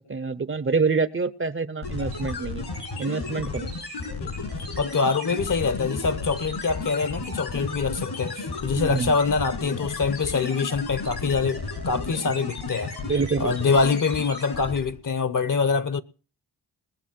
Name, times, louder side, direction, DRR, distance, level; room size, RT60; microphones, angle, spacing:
voice 1, 0.1-2.6 3.0-3.7 8.8-9.1 13.0-13.6, right 4 dB, 30° right, 0.7 m, -26 dB
sound 1, 1.8-15.0, left 3 dB, 75° left, 7.0 m, -33 dB
voice 2, 4.8-12.9 13.4-16.0, left 4 dB, 50° left, 1.1 m, -25 dB
20.0 x 7.1 x 7.5 m
cardioid pair, 75°, 40 cm